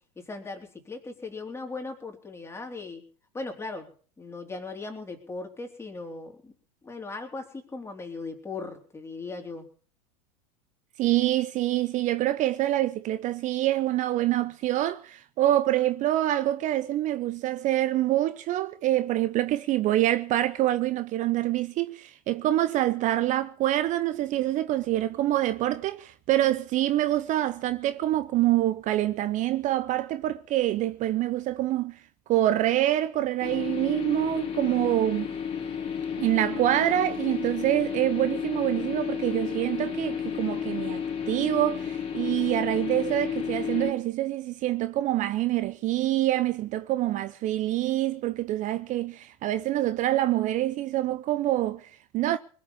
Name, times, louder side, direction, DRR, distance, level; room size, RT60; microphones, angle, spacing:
voice 1, 0.2-3.0 3.3-3.9 4.2-6.5 6.8-9.7, left 3 dB, 15° left, 4.0 m, -38 dB
voice 2, 11.0-32.0 32.3-35.3 36.2-52.4, right 14 dB, 40° right, 0.8 m, -26 dB
sound 1, 33.4-43.9, left 7 dB, 35° left, 3.8 m, -32 dB
21.0 x 7.3 x 8.4 m
hypercardioid pair, 95°, 19 cm